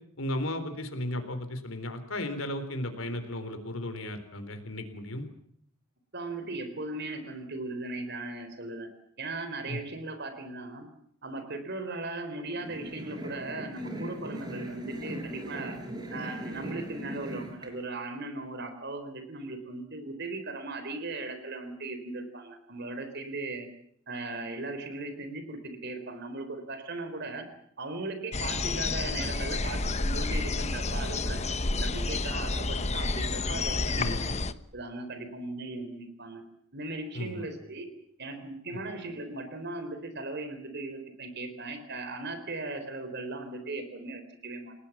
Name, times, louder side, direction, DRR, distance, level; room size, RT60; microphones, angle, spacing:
voice 1, 0.2-5.3 9.7-9.8 33.9-34.2 37.1-37.5 38.7-38.8, left 1 dB, 80° left, 8 dB, 3.8 m, -35 dB
voice 2, 6.1-8.9 9.2-10.9 11.2-15.8 16.1-23.7 24.1-27.5 27.8-31.4 31.7-34.4 34.7-36.4 36.7-37.9 38.2-44.7, right 2 dB, 55° right, 8 dB, 4.0 m, -38 dB
sound 1, 12.5-17.7, right 1 dB, 20° right, 6.0 m, -39 dB
sound 2, 28.3-34.5, left 3 dB, 35° left, 1.1 m, -30 dB
30.0 x 18.5 x 7.3 m, 0.68 s
head